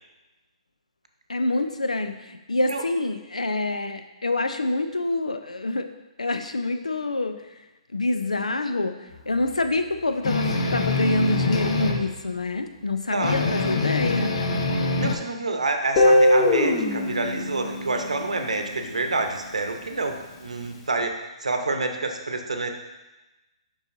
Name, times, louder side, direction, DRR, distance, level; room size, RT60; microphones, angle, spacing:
voice 1, 1.3-5.9 6.2-7.4 7.9-9.0 9.3-14.3, left 2 dB, 90° left, 8 dB, 0.5 m, -26 dB
sound 1, 10.2-12.1 13.2-15.1, left 3 dB, 60° left, 0.9 m, -24 dB
voice 2, 13.1-13.5 15.0-22.7, right 3 dB, 85° right, 4 dB, 0.8 m, -28 dB
Guitar, 16.0-18.9, left 1 dB, 35° left, 1.0 m, -21 dB
7.1 x 5.5 x 2.7 m, 1.0 s
figure-of-eight pair, 130°, 4 cm